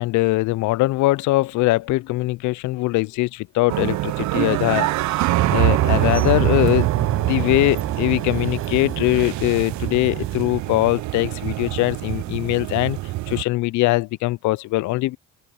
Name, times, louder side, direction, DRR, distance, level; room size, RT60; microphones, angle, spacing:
voice 1, 0.0-4.9 5.2-13.0 13.3-15.2, left 19 dB, 70° left, 0.5 m, -21 dB
sound 1, 3.7-13.4, right 18 dB, 65° right, 0.6 m, -24 dB
sound 2, 5.3-10.5, right 7 dB, 45° right, 5.4 m, -32 dB
open air
cardioid pair, 95°, 31 cm